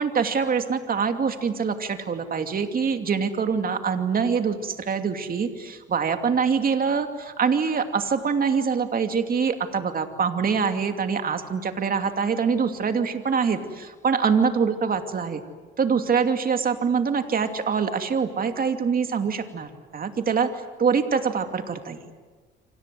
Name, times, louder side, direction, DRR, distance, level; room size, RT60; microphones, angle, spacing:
voice 1, 0.0-15.4 15.8-20.5 20.8-22.0, right 6 dB, 45° right, 6 dB, 2.8 m, -24 dB
29.0 x 26.0 x 7.8 m, 1.4 s
cardioid pair, 90°, 20 cm